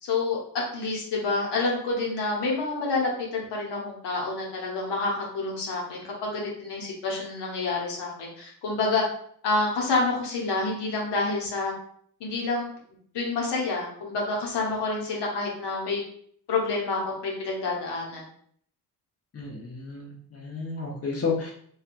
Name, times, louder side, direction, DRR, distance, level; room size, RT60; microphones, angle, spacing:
voice 1, 0.0-9.0 9.4-11.7 12.2-12.7 13.1-16.0 16.5-18.3, left 3 dB, 75° left, -2 dB, 0.9 m, -28 dB
voice 2, 19.3-21.5, left 4 dB, 35° left, -2 dB, 0.8 m, -31 dB
2.7 x 2.3 x 2.5 m, 0.62 s
supercardioid pair, 60°, 42 cm